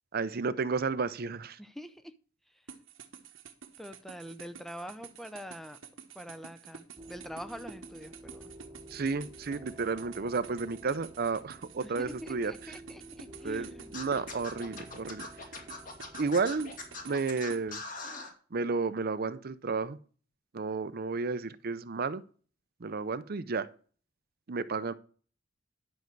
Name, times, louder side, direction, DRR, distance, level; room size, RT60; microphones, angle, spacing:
voice 1, 0.1-1.6 8.9-12.5 13.4-15.3 16.2-16.7 17.0-17.8 18.5-20.0 20.5-22.2 22.8-23.7 24.5-24.9, right 4 dB, 50° right, 0.6 m, -32 dB
voice 2, 1.6-2.1 3.8-5.8 6.1-8.5 11.8-14.0, equal, ahead, 0.6 m, -44 dB
sound 1, 2.7-17.6, right 6 dB, 75° right, 1.2 m, -50 dB
sound 2, 7.0-17.1, right 1 dB, 20° right, 1.1 m, -51 dB
Scratching (performance technique), 13.9-18.3, left 3 dB, 45° left, 2.1 m, -41 dB
10.5 x 6.4 x 4.6 m
head